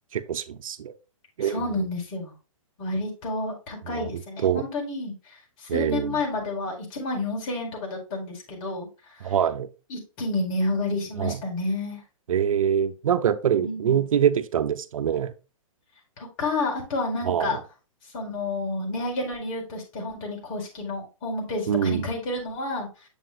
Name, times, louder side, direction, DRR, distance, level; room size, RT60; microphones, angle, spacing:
voice 1, 0.1-0.9 1.4-1.8 3.8-4.1 4.4-4.6 5.7-6.2 9.2-9.7 11.2-11.4 12.3-15.3 17.2-17.6 21.7-22.1, right 9 dB, 80° right, 11 dB, 0.9 m, -24 dB
voice 2, 1.4-2.3 2.8-9.3 9.9-12.0 13.6-14.0 16.2-17.6 18.1-23.1, left 2 dB, 40° left, 0 dB, 4.4 m, -30 dB
9.1 x 7.1 x 2.3 m, 0.31 s
hypercardioid pair, 135°, 17 cm